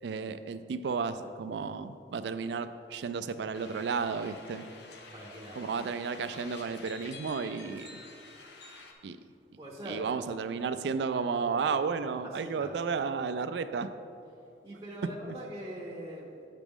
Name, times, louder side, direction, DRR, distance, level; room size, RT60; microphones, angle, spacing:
voice 1, 0.0-4.6 5.6-8.0 9.0-9.2 9.9-13.9 15.3-15.4, right 5 dB, 75° right, 11 dB, 0.3 m, -33 dB
sound 1, 3.5-8.9, left 3 dB, 70° left, 0.7 m, -49 dB
voice 2, 5.1-5.7 9.6-10.0 12.3-12.7 14.6-16.5, equal, 20° right, -3 dB, 0.7 m, -42 dB
8.2 x 5.9 x 3.6 m, 2.6 s
head